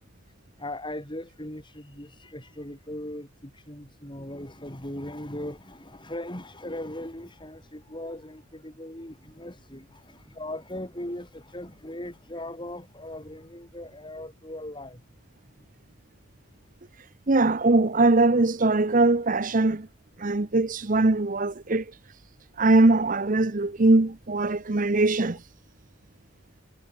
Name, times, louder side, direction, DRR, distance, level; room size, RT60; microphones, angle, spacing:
voice 1, 0.3-15.0, left 1 dB, 20° left, 5.4 m, -39 dB
voice 2, 17.3-19.9 20.2-21.9 22.6-25.4, right 2 dB, 40° right, 0.9 m, -21 dB
head